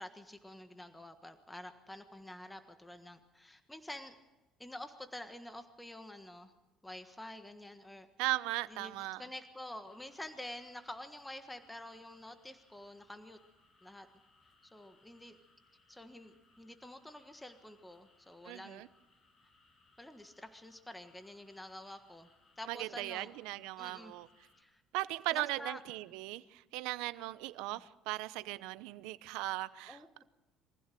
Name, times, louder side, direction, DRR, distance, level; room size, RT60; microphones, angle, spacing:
voice 1, 0.0-4.1 4.6-6.5 6.8-8.1 8.7-13.4 13.8-14.1 14.7-15.4 15.9-18.9 20.0-22.3 22.6-23.3 23.8-24.1 24.6-24.8 25.3-25.8 29.9-30.2, left 1 dB, 5° left, 1.4 m, -48 dB
voice 2, 8.2-9.2 18.4-18.9 22.7-24.3 24.9-30.0, right 18 dB, 85° right, 0.8 m, -38 dB
sound 1, 9.8-24.6, left 3 dB, 30° left, 5.4 m, -69 dB
23.5 x 15.5 x 7.7 m
cardioid pair, 120°, 0 cm